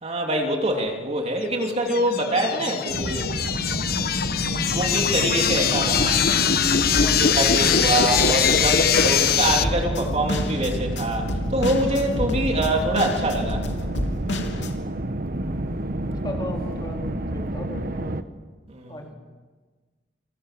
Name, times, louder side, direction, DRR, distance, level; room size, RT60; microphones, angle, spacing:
voice 1, 0.0-3.3 4.7-6.3 7.0-13.7 18.7-19.0, right 1 dB, 35° right, 2 dB, 3.3 m, -25 dB
sound 1, 1.7-9.6, left 7 dB, 55° left, 1.1 m, -22 dB
sound 2, 2.9-18.2, right 1 dB, 50° right, 1.3 m, -30 dB
sound 3, 5.9-14.7, left 1 dB, 70° left, 3.6 m, -31 dB
voice 2, 16.1-18.2 18.9-19.1, left 1 dB, 25° left, 1 dB, 4.0 m, -36 dB
29.0 x 24.0 x 7.7 m, 1.4 s
head